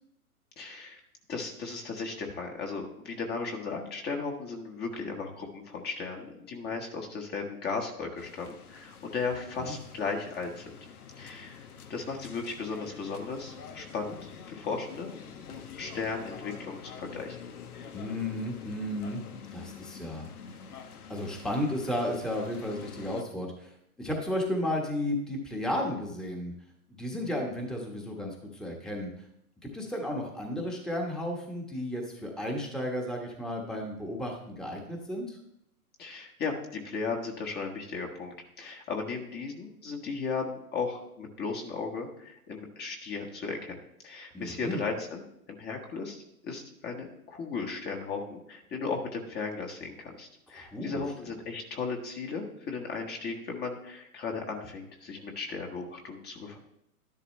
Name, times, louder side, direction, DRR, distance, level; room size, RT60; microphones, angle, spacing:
voice 1, 0.6-1.0 1.3-10.8 11.2-15.2 15.5-17.4 36.0-43.8 44.0-45.2 45.5-56.6, left 4 dB, 20° left, 2 dB, 1.4 m, -36 dB
sound 1, 8.2-23.2, left 7 dB, 70° left, 1.3 m, -47 dB
voice 2, 17.9-19.2 19.5-20.3 21.1-26.5 27.0-29.1 29.6-35.4 44.3-44.8 50.5-51.0, left 1 dB, ahead, 0 dB, 1.3 m, -33 dB
12.0 x 11.0 x 3.2 m, 0.77 s
hypercardioid pair, 125°, 46 cm